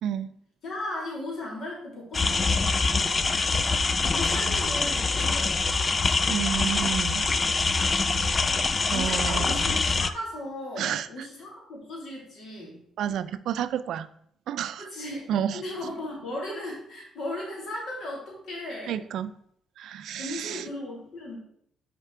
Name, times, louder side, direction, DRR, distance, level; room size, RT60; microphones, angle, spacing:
voice 1, 0.0-0.3 6.3-7.3 7.9-8.5 8.9-9.5 10.8-11.1 13.0-14.1 14.5-14.8 15.3-15.6 18.9-19.3 19.8-20.6, right 10 dB, 75° right, 13 dB, 0.4 m, -30 dB
voice 2, 0.6-2.7 4.0-6.0 8.9-12.8 14.8-19.0 19.9-21.4, left 1 dB, 70° left, -2 dB, 2.7 m, -36 dB
sound 1, 2.1-10.1, left 4 dB, 30° left, 0.4 m, -24 dB
5.7 x 4.5 x 4.6 m, 0.68 s
cardioid pair, 90°, 0 cm